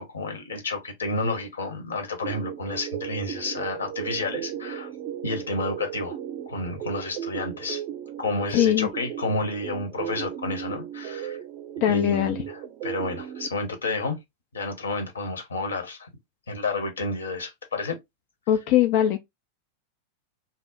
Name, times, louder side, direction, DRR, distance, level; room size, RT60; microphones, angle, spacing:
voice 1, 0.0-4.9 5.2-6.2 6.5-7.8 8.2-11.4 11.9-14.2 14.5-16.1 16.5-17.9, left 2 dB, 70° left, 1.0 m, -30 dB
sound 1, 2.2-13.5, right 10 dB, 40° right, 0.4 m, -36 dB
voice 2, 8.5-8.9 11.8-12.4 18.5-19.2, left 11 dB, 45° left, 0.4 m, -21 dB
2.8 x 2.0 x 3.9 m
figure-of-eight pair, 90°, 0 cm